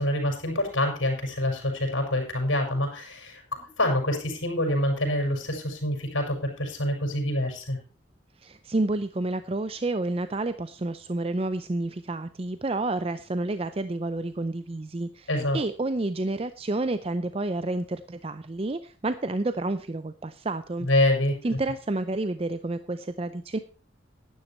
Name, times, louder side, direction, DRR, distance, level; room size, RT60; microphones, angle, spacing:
voice 1, 0.0-7.8 15.3-15.6 20.8-21.4, left 1 dB, 85° left, 3 dB, 5.5 m, -26 dB
voice 2, 8.4-15.3 15.5-20.9 21.4-23.6, right 2 dB, 30° right, 12 dB, 0.5 m, -29 dB
12.0 x 10.5 x 4.4 m, 0.35 s
head